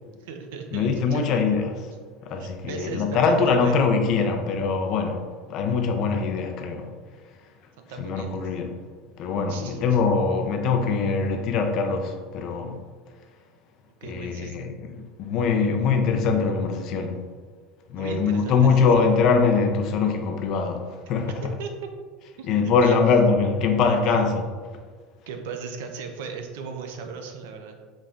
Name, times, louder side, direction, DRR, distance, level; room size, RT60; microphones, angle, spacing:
voice 1, 0.2-1.4 2.4-3.8 7.8-8.5 9.5-10.0 14.0-14.6 17.9-19.1 21.3-21.4 21.6-21.7 22.4-23.0 24.0-24.3 25.3-27.8, right 5 dB, 85° right, 0.5 m, -37 dB
voice 2, 0.7-1.8 2.2-6.9 8.0-8.7 9.2-12.8 14.0-17.3 17.9-21.4 22.5-24.4, left 5 dB, 45° left, 0.4 m, -23 dB
4.0 x 3.3 x 2.4 m
cardioid pair, 160°, 0 cm